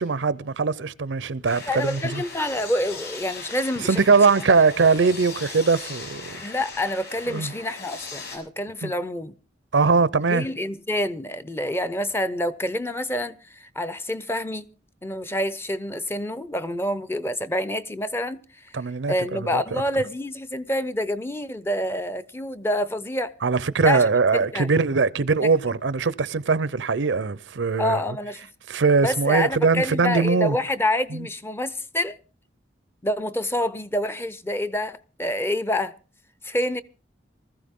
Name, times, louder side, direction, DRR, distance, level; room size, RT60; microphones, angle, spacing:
voice 1, 0.0-2.2 3.9-6.4 7.3-7.5 8.8-8.9 9.7-10.5 18.7-19.6 23.4-28.0 28.7-30.6 31.1-31.3, right 4 dB, 80° right, 0.6 m, -21 dB
sound 1, 1.4-8.4, left 4 dB, 65° left, 6.0 m, -38 dB
voice 2, 1.7-4.0 6.4-9.3 10.3-14.7 15.0-18.7 19.1-23.4 23.8-24.0 24.3-24.8 25.4-25.5 27.8-28.5 29.0-32.2 33.0-35.9 36.4-36.8, left 1 dB, 15° left, 0.6 m, -27 dB
20.0 x 14.0 x 3.6 m
head